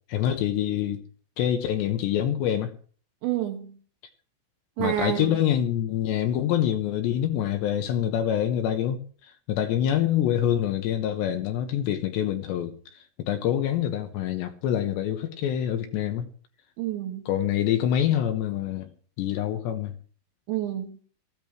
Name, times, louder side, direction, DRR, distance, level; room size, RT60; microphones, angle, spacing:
voice 1, 0.1-1.0 1.4-2.7 4.8-9.0 9.5-12.8 13.2-16.3 17.3-18.9 19.2-20.0, left 10 dB, 75° left, 2.9 m, -25 dB
voice 2, 3.2-3.8 4.8-5.4 16.8-17.3 20.5-21.0, right 12 dB, 70° right, 3.4 m, -29 dB
19.0 x 14.5 x 3.2 m
omnidirectional pair, 5.7 m